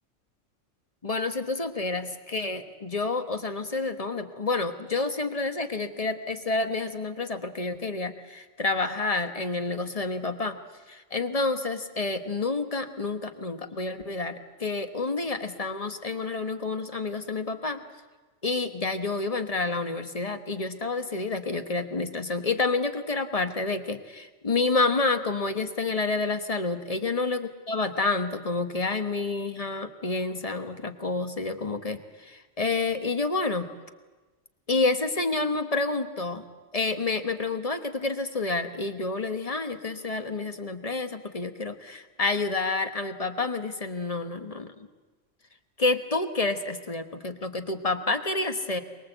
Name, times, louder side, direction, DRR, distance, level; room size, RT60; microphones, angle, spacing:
voice 1, 1.0-10.6 10.9-17.8 18.4-33.7 34.7-36.4 36.7-44.9 45.8-48.8, left 3 dB, 30° left, 8 dB, 1.2 m, -29 dB
23.5 x 21.0 x 8.0 m, 1.2 s
omnidirectional pair, 1.3 m